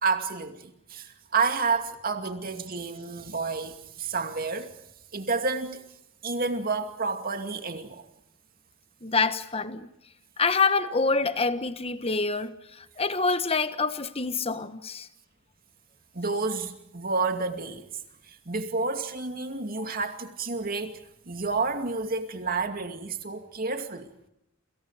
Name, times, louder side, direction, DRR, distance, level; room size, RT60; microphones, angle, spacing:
voice 1, 0.0-4.7 5.1-5.8 6.2-8.1 16.1-17.9 18.2-21.0 21.3-24.1, right 4 dB, 45° right, 2.5 m, -30 dB
voice 2, 9.0-9.9 10.4-15.1, left 4 dB, 30° left, 1.3 m, -26 dB
28.5 x 27.5 x 5.0 m
head